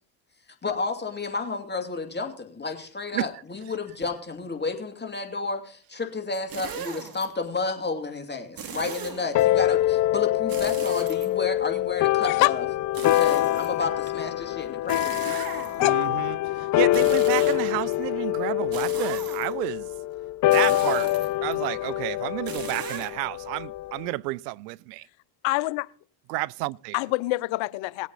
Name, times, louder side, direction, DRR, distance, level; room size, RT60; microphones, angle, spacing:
voice 1, 0.6-12.6 13.0-15.3, left 4 dB, 20° left, 2.6 m, -31 dB
sound 1, 6.5-7.3 8.6-9.4 10.5-11.7 12.9-14.1 14.9-16.0 16.8-18.0 18.7-19.7 20.5-21.5 22.4-23.1, right 7 dB, 45° right, 2.5 m, -38 dB
sound 2, 9.3-24.1, left 15 dB, 40° left, 0.5 m, -25 dB
voice 2, 12.2-12.5 15.8-16.0 25.4-25.9 26.9-28.1, left 20 dB, 65° left, 0.8 m, -25 dB
voice 3, 15.8-19.9 20.5-21.1 21.4-25.1 26.3-27.0, right 21 dB, 85° right, 0.6 m, -31 dB
19.5 x 8.4 x 4.1 m
hypercardioid pair, 70°, 48 cm